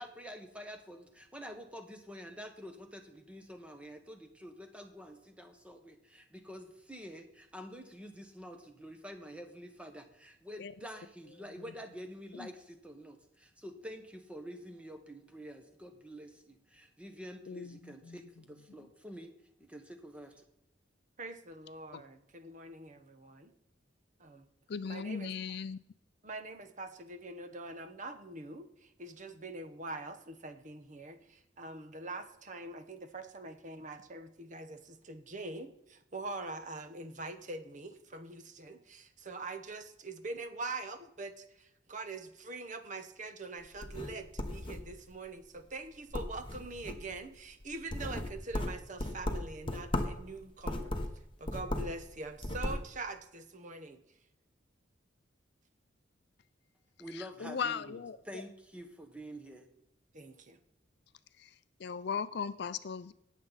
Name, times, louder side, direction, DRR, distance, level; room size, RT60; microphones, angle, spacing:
voice 1, 0.0-19.3 19.6-20.4 57.0-59.7, equal, 5° right, 1.2 m, -48 dB
voice 2, 17.5-18.2 21.9-22.0 24.7-25.8 57.1-58.4 61.4-61.5 61.8-63.1, left 6 dB, 55° left, 0.4 m, -38 dB
voice 3, 21.2-23.5 24.2-24.4 24.9-25.3 26.2-50.9 51.4-54.0 60.1-60.6, right 3 dB, 40° right, 0.9 m, -44 dB
sound 1, 43.6-45.2 45.6-45.8 46.1-47.2 47.6-50.2 50.6-52.0 52.3-52.8, left 1 dB, 25° left, 1.1 m, -36 dB
18.0 x 7.3 x 4.1 m
head